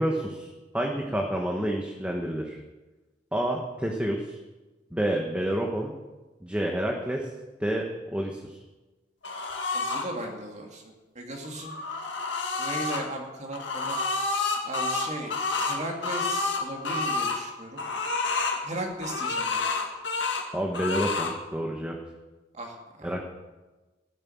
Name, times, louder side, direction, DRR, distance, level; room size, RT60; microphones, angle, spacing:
voice 1, 0.0-2.6 3.3-4.4 4.9-5.9 6.4-7.3 7.6-8.6 20.5-22.0 23.0-23.2, right 1 dB, 5° right, 0 dB, 1.2 m, -29 dB
sound 1, 9.2-10.1 11.4-13.0 13.5-17.4 17.8-18.6 19.0-20.5 20.7-21.3, left 3 dB, 70° left, 2.0 m, -29 dB
voice 2, 9.7-11.7 12.6-14.0 14.6-17.8 18.6-19.6 22.5-23.1, right 1 dB, 40° right, 1 dB, 2.5 m, -37 dB
14.5 x 10.0 x 7.2 m, 1.2 s
head